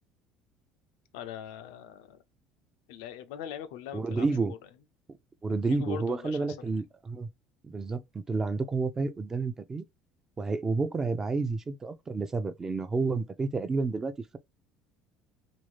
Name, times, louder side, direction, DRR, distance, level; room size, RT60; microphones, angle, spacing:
voice 1, 1.1-2.2 2.9-4.6 5.5-6.5, left 9 dB, 80° left, 0.5 m, -41 dB
voice 2, 3.9-4.6 5.4-7.3 7.6-9.9 10.4-14.4, right 4 dB, 25° right, 0.5 m, -30 dB
3.0 x 2.7 x 3.1 m
supercardioid pair, 85°, 2 cm